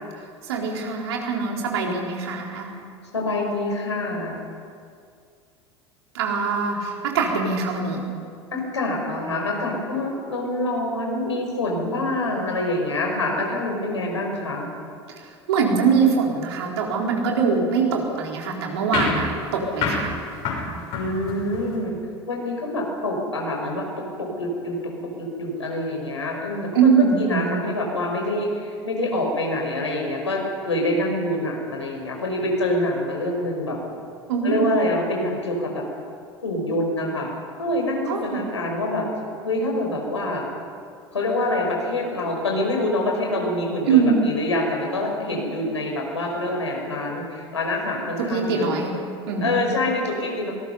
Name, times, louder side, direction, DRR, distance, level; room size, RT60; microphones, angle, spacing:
voice 1, 0.5-2.8 6.1-8.0 15.2-20.1 26.7-27.5 34.3-34.7 38.1-38.2 43.9-44.2 48.2-49.0 49.3-49.7, right 5 dB, 65° right, 0 dB, 3.9 m, -22 dB
voice 2, 3.1-4.4 8.5-14.7 20.9-22.0 22.3-33.8 34.4-35.8 36.4-37.3 37.6-39.0 39.4-40.5 41.1-48.7 49.4-50.5, left 1 dB, 80° left, 0 dB, 5.1 m, -26 dB
sound 1, 18.9-21.8, left 4 dB, 50° left, 6.2 m, -28 dB
25.5 x 19.5 x 5.5 m, 2.3 s
figure-of-eight pair, 75°, 15 cm